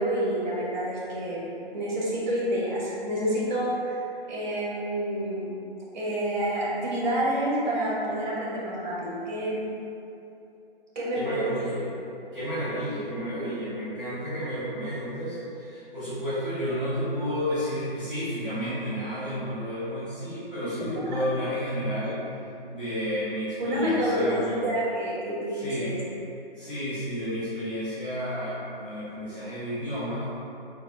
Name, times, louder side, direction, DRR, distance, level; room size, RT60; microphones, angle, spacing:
voice 1, 0.0-1.4 1.7-4.0 4.3-5.5 5.9-9.6 10.9-11.4 20.6-20.7 23.6-26.0, right 1 dB, 45° right, -6 dB, 1.2 m, -28 dB
voice 2, 11.1-11.9 12.3-22.2 22.7-24.5 25.5-25.9 26.6-30.2, equal, ahead, -25 dB, 0.3 m, -31 dB
3.5 x 2.3 x 3.8 m, 2.8 s
figure-of-eight pair, 135°, 30 cm